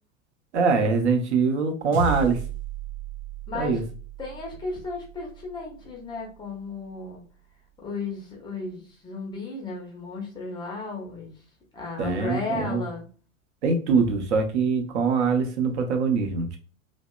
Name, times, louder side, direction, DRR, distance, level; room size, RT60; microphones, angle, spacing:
voice 1, 0.5-2.4 3.5-3.8 12.0-12.8 13.6-16.6, right 5 dB, 55° right, 4 dB, 0.7 m, -23 dB
sound 1, 1.9-6.5, right 5 dB, 90° right, 0.7 m, -35 dB
voice 2, 3.5-3.8 4.2-7.2 7.8-11.4 11.7-13.0, left 3 dB, 10° left, -1 dB, 0.5 m, -34 dB
2.7 x 2.0 x 2.2 m, 0.38 s
figure-of-eight pair, 90°, 41 cm